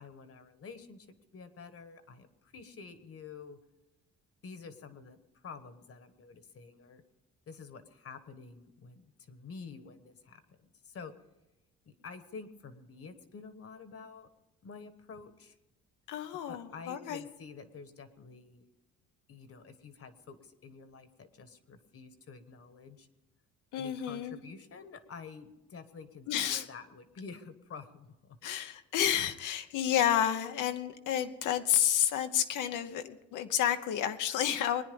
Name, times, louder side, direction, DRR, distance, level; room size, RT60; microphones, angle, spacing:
voice 1, 0.0-3.6 4.4-7.0 7.5-10.6 10.8-11.1 11.8-14.3 14.6-15.5 16.5-18.6 19.3-23.1 23.7-28.4, left 5 dB, 50° left, 11 dB, 1.3 m, -49 dB
voice 2, 16.1-17.2 23.7-24.4 26.3-26.7 28.4-34.8, left 10 dB, 90° left, 8 dB, 1.0 m, -30 dB
22.0 x 9.8 x 5.3 m, 0.99 s
cardioid pair, 90°, 30 cm